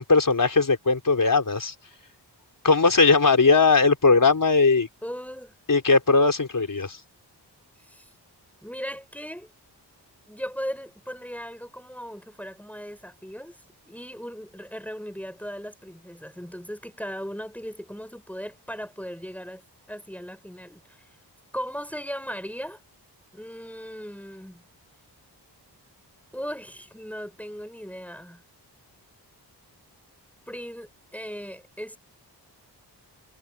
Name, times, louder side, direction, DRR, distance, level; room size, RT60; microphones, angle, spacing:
voice 1, 0.0-1.7 2.6-4.9 5.7-7.0, left 4 dB, 50° left, 4.6 m, -19 dB
voice 2, 5.0-5.5 7.8-8.1 8.6-9.5 10.3-13.6 13.9-19.6 19.9-21.0 21.5-22.8 23.3-24.6 26.3-28.4 30.5-32.0, equal, 5° left, 7.2 m, -37 dB
cardioid pair, 65°, 42 cm